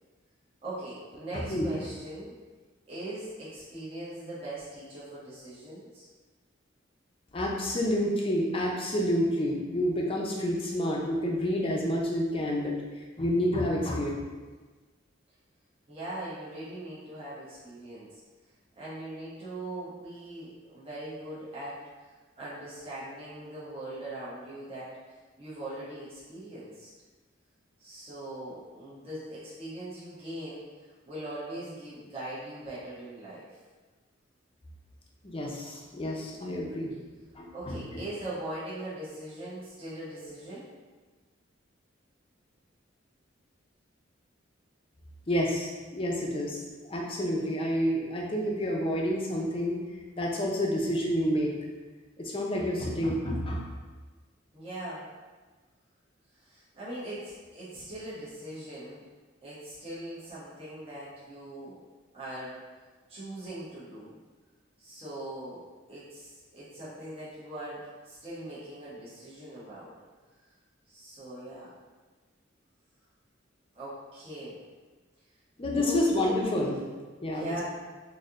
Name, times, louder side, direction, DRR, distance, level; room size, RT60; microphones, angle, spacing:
voice 1, 0.6-2.3 2.9-6.1 15.9-18.2 18.8-25.0 25.4-26.9 27.8-30.6 31.1-33.5 37.5-40.7 54.5-55.1 56.4-59.1 59.4-61.8 62.1-62.6 63.1-64.1 64.8-65.6 65.9-69.9 70.9-71.7 73.7-74.6 75.6-76.0 77.2-77.6, right 1 dB, 30° right, -10 dB, 1.0 m, -41 dB
voice 2, 1.3-1.7 7.3-12.7 13.2-14.1 35.2-36.9 37.3-37.8 45.3-49.8 50.2-51.5 52.2-53.6 75.6-76.8 77.2-77.6, equal, 30° left, -2 dB, 0.6 m, -29 dB
4.2 x 2.8 x 2.5 m, 1.3 s
head